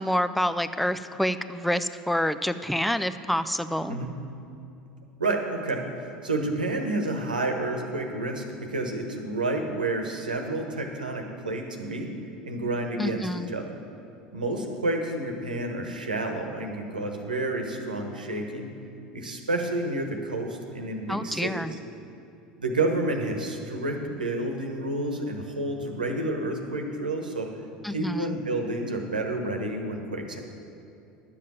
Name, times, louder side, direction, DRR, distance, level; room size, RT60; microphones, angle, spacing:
voice 1, 0.0-4.0 13.0-13.5 21.1-21.7 27.8-28.4, equal, ahead, 12 dB, 0.4 m, -27 dB
voice 2, 5.2-12.1 12.4-13.8 14.3-18.7 19.1-21.6 22.6-27.5 27.9-30.4, right 2 dB, 85° right, 4 dB, 1.2 m, -30 dB
11.5 x 7.4 x 7.6 m, 2.7 s
figure-of-eight pair, 75°, 4 cm